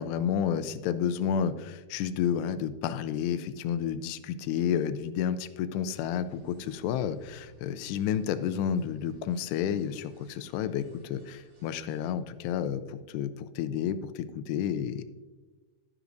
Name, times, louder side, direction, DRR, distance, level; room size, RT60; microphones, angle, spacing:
voice 1, 0.0-15.0, left 8 dB, 80° left, 11 dB, 2.5 m, -31 dB
sound 1, 5.9-12.1, right 2 dB, 80° right, 5.4 m, -58 dB
11.0 x 10.0 x 2.6 m, 1.3 s
omnidirectional pair, 5.0 m